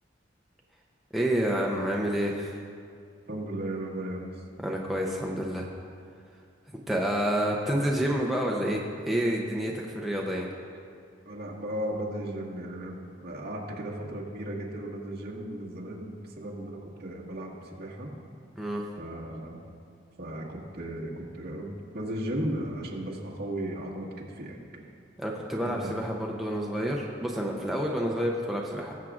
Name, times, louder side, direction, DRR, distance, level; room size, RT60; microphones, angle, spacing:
voice 1, 1.1-2.6 4.6-5.7 6.9-8.8 9.1-10.5 18.6-18.8 25.2-28.9, equal, ahead, -3 dB, 0.6 m, -28 dB
voice 2, 3.3-4.3 11.3-18.1 19.0-19.6 20.2-24.6 25.6-25.9, right 1 dB, 55° right, -4 dB, 1.7 m, -35 dB
21.0 x 7.3 x 2.5 m, 2.3 s
head